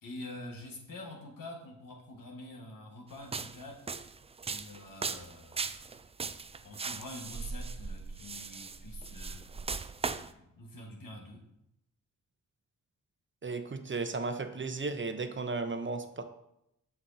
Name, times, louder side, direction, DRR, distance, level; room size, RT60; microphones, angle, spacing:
voice 1, 0.0-3.8 4.4-6.0 6.6-9.4 10.0-11.4, left 1 dB, 75° left, 0 dB, 1.6 m, -46 dB
sound 1, 3.2-10.3, right 4 dB, 20° right, 0.3 m, -38 dB
voice 2, 13.4-16.2, right 3 dB, 35° right, 8 dB, 0.7 m, -35 dB
7.5 x 5.9 x 2.8 m, 0.80 s
cardioid pair, 55°, 33 cm